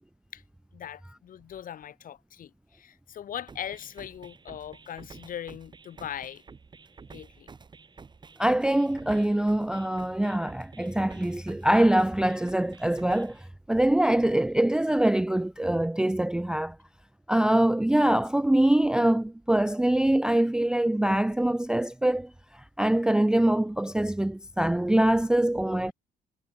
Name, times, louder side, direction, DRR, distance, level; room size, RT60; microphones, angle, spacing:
voice 1, 0.7-6.4 7.1-7.5, left 10 dB, 55° left, 7.4 m, -40 dB
sound 1, 3.5-13.5, right 5 dB, 25° right, 3.2 m, -50 dB
voice 2, 8.4-16.8 17.3-25.9, right 1 dB, 5° right, 0.5 m, -24 dB
cardioid pair, 110°, 17 cm